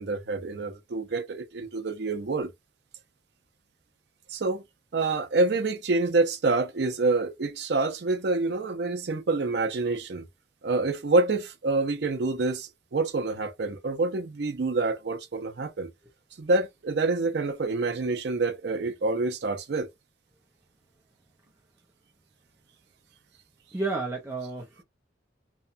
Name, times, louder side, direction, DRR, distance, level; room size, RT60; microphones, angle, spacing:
voice 1, 0.0-2.5 4.3-4.6 4.9-10.3 10.6-15.9 16.4-19.9, right 3 dB, 60° right, 0.5 m, -27 dB
voice 2, 23.7-24.8, right 3 dB, 15° right, 0.5 m, -31 dB
2.9 x 2.1 x 2.5 m
head